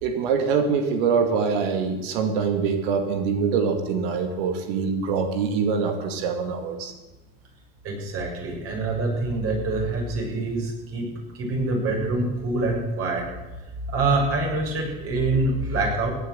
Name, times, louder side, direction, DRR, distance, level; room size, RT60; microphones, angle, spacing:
voice 1, 0.0-6.9, right 5 dB, 80° right, 5 dB, 2.4 m, -24 dB
voice 2, 7.8-13.2 13.9-16.1, right 2 dB, 50° right, 0 dB, 6.8 m, -25 dB
17.0 x 9.4 x 8.1 m, 1.1 s
supercardioid pair, 115°, 29 cm